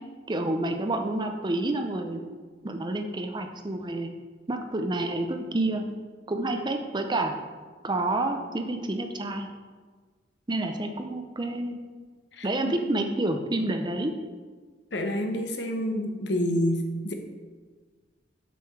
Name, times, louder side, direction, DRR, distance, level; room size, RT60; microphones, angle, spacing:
voice 1, 0.3-2.2 2.6-4.1 4.5-5.8 6.3-7.3 7.8-9.5 10.5-11.8 12.4-14.1, right 2 dB, 25° right, 5 dB, 0.6 m, -28 dB
voice 2, 12.3-12.7 14.9-17.1, equal, 70° left, 4 dB, 1.0 m, -28 dB
7.0 x 6.6 x 4.6 m, 1.4 s
head